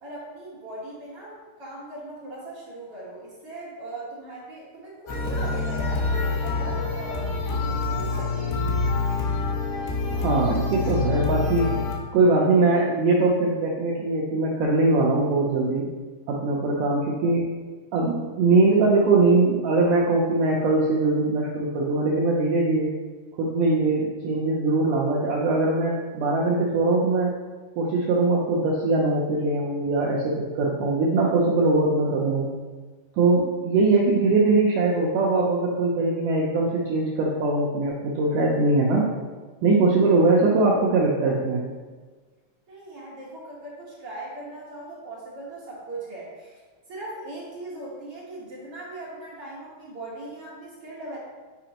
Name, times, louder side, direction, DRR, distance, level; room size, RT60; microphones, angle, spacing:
voice 1, 0.0-7.3 7.6-8.5 42.7-46.6 46.9-51.2, right 2 dB, 65° right, -7 dB, 1.4 m, -39 dB
sound 1, 5.1-12.0, left 3 dB, 75° left, 2.9 m, -26 dB
voice 2, 10.1-11.7 12.1-15.9 16.3-17.5 17.9-22.9 23.4-27.3 27.8-32.5 33.2-39.1 39.6-41.6, right 3 dB, 80° right, -3 dB, 1.8 m, -21 dB
9.8 x 5.0 x 2.9 m, 1.4 s
omnidirectional pair, 4.7 m